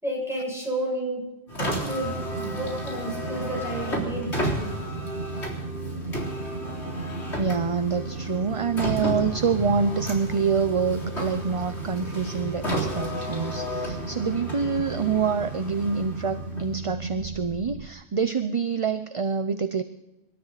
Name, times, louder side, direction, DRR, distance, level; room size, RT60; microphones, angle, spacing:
voice 1, 0.0-1.2 1.8-2.1 2.4-4.8, right 1 dB, ahead, -2 dB, 7.1 m, -31 dB
Car, 1.5-16.9, equal, 80° left, 4.1 m, -33 dB
sound 1, 2.0-17.9, right 3 dB, 70° right, 1.4 m, -36 dB
voice 2, 7.3-19.8, right 5 dB, 35° right, 10 dB, 0.6 m, -26 dB
25.5 x 12.5 x 4.1 m, 0.98 s
omnidirectional pair, 1.1 m